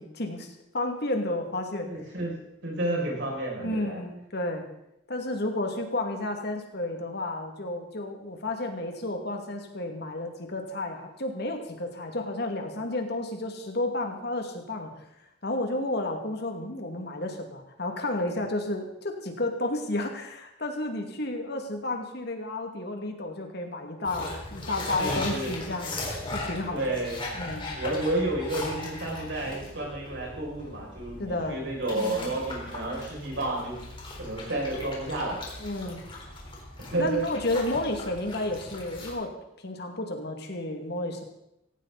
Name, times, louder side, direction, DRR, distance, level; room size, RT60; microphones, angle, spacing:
voice 1, 0.0-1.9 3.6-4.7 5.1-15.0 15.4-27.0 27.3-27.7 31.2-31.6 31.9-32.3 35.6-36.0 37.0-41.2, left 2 dB, 55° left, 4 dB, 2.4 m, -32 dB
voice 2, 1.8-4.0 24.6-24.7 25.0-25.5 26.7-27.4 27.7-33.8 34.2-35.4 36.8-37.2, right 2 dB, 65° right, -2 dB, 6.6 m, -31 dB
sound 1, 24.0-39.1, left 2 dB, 25° left, 4.2 m, -38 dB
17.0 x 17.0 x 4.1 m, 0.81 s
head